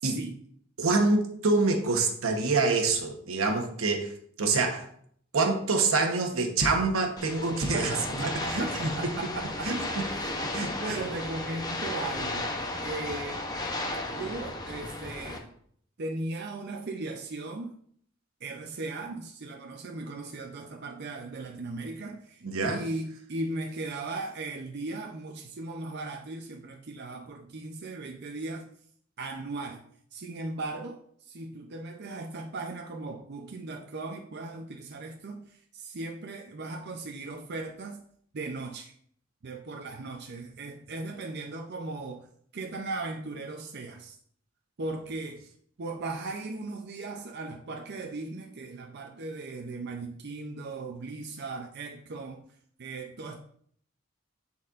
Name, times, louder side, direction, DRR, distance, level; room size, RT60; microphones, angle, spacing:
voice 1, 0.0-0.3 7.5-13.4 14.1-15.5 16.0-17.8 18.4-28.7 29.2-29.8 30.1-38.0 38.3-38.9 39.4-44.2 44.8-45.4 45.8-52.4 52.8-53.4, right 2 dB, 55° right, 2 dB, 0.6 m, -37 dB
voice 2, 0.8-4.1 4.4-4.9 5.3-8.2 8.5-8.7 9.6-9.8 10.5-11.0 22.4-22.8, right 3 dB, 85° right, 4 dB, 1.1 m, -26 dB
sound 1, 7.2-15.4, left 2 dB, 20° left, 0.7 m, -34 dB
10.5 x 4.3 x 2.5 m, 0.62 s
head